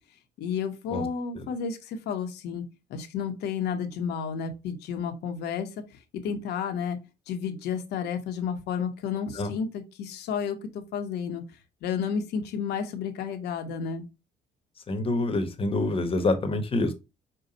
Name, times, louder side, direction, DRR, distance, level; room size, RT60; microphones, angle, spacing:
voice 1, 0.4-2.6 2.9-5.7 6.2-7.0 7.3-9.7 10.0-11.4 11.8-14.0, left 7 dB, 75° left, 1.1 m, -31 dB
voice 2, 14.9-16.9, left 2 dB, 35° left, 1.0 m, -26 dB
5.7 x 2.3 x 3.9 m
cardioid pair, 110°, 17 cm